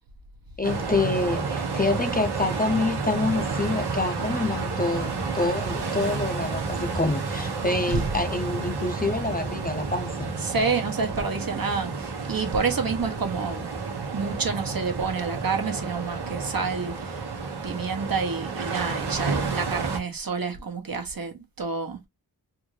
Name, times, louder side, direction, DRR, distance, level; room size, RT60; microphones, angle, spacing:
voice 1, 0.6-10.3, left 3 dB, 25° left, 0.6 m, -27 dB
sound 1, 0.6-20.0, right 4 dB, 80° right, 1.1 m, -30 dB
voice 2, 7.7-8.2 10.4-13.7 14.1-17.2 17.6-22.0, right 4 dB, 60° right, 1.1 m, -29 dB
3.5 x 2.5 x 3.1 m
wide cardioid pair, 65°, 39 cm